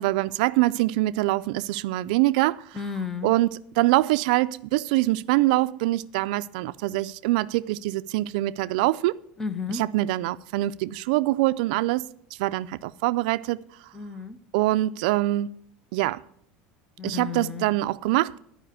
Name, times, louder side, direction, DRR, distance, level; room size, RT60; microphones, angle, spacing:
voice 1, 0.0-2.8 3.2-9.2 9.7-12.1 12.4-13.6 14.5-15.6 15.9-16.2 17.0-18.4, right 17 dB, 70° right, 0.3 m, -24 dB
voice 2, 2.7-3.3 9.4-9.8 13.9-14.4 17.0-17.7, left 5 dB, 10° left, 0.5 m, -32 dB
11.0 x 4.9 x 8.0 m
cardioid pair, 170°, 5 cm